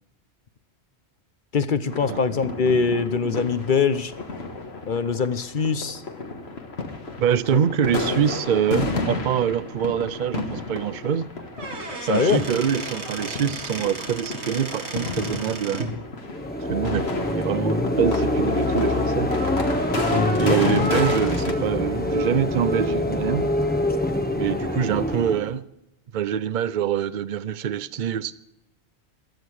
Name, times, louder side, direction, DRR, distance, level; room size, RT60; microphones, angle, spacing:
voice 1, 1.5-4.1 4.9-6.0 7.5-7.6 12.1-12.4 20.1-20.6, left 5 dB, 50° left, 0.9 m, -23 dB
sound 1, 1.9-21.5, left 3 dB, 70° left, 1.8 m, -32 dB
voice 2, 7.2-11.3 12.1-15.8 16.7-19.3 20.4-23.5 24.3-25.6 26.1-28.3, right 8 dB, 50° right, 0.7 m, -25 dB
Squeak / Wood, 11.4-16.0, right 3 dB, 80° right, 2.1 m, -34 dB
sound 2, 16.2-25.6, left 1 dB, 10° left, 1.0 m, -25 dB
15.5 x 12.5 x 4.8 m
omnidirectional pair, 1.1 m